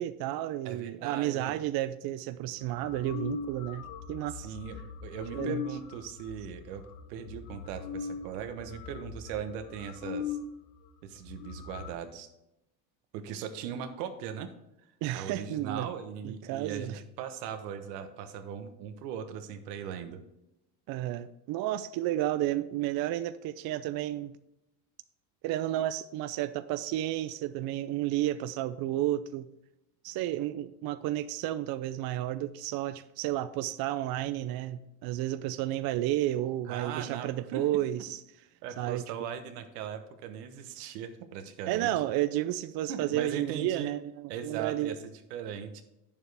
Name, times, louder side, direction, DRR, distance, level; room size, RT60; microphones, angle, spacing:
voice 1, 0.0-4.5 5.3-5.6 15.0-15.9 16.2-17.0 20.9-24.3 25.4-29.5 30.0-38.2 38.8-39.0 41.7-45.0, right 13 dB, 50° right, 12 dB, 0.5 m, -32 dB
voice 2, 0.6-1.5 4.3-10.4 11.0-12.3 13.1-14.5 15.1-20.2 36.7-38.0 38.4-41.9 42.9-43.9 44.3-45.8, right 8 dB, 85° right, 8 dB, 1.2 m, -39 dB
sound 1, 2.6-10.5 10.8-10.9 11.2-11.9, left 6 dB, 80° left, 1.0 m, -40 dB
8.9 x 7.2 x 3.4 m, 0.89 s
supercardioid pair, 105°, 47 cm